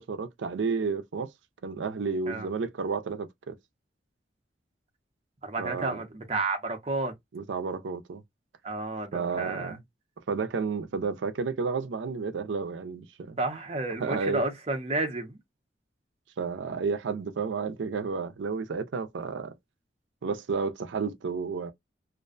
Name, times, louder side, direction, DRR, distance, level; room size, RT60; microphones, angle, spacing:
voice 1, 0.0-1.3 1.6-3.6 5.6-6.0 7.3-8.2 9.1-9.8 10.3-13.4 14.0-14.4 16.4-19.5 20.2-21.7, right 5 dB, 85° right, 0.4 m, -31 dB
voice 2, 5.4-7.1 8.6-9.8 13.4-15.4, right 2 dB, 35° right, 0.6 m, -31 dB
2.5 x 2.1 x 2.4 m
head